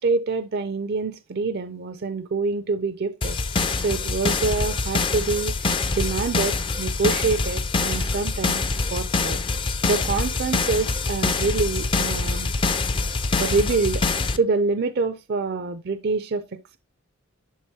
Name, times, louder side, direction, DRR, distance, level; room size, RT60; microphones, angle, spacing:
voice 1, 0.0-3.4 3.8-8.7 8.9-9.4 9.8-12.5 13.4-14.0 14.4-16.8, right 4 dB, 45° right, 0.4 m, -26 dB
sound 1, 3.2-14.4, left 3 dB, 25° left, 0.4 m, -25 dB
11.0 x 3.8 x 2.8 m
head